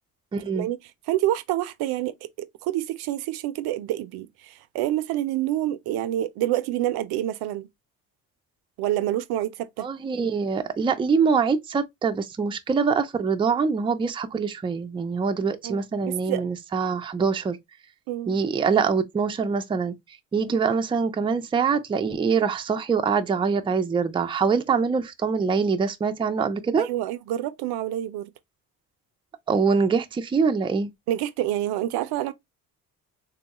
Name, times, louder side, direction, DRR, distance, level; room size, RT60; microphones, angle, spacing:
voice 1, 0.3-0.7 9.8-17.6 18.3-19.9 20.3-26.9 29.5-30.9, right 5 dB, 15° right, 0.4 m, -24 dB
voice 2, 1.1-7.7 8.8-9.9 15.6-16.4 18.1-18.4 26.8-28.3 31.1-32.3, right 13 dB, 75° right, 0.5 m, -27 dB
3.5 x 2.2 x 2.8 m
supercardioid pair, 85°, 39 cm